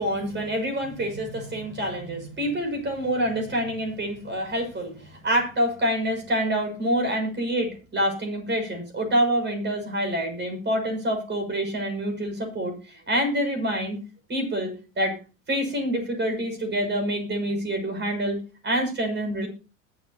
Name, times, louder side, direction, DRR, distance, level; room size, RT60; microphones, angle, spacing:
voice 1, 0.0-14.0 14.3-14.7 15.0-15.1 15.5-19.5, equal, 25° right, 4 dB, 6.4 m, -27 dB
21.0 x 8.4 x 2.9 m, 0.33 s
hypercardioid pair, 85°, 41 cm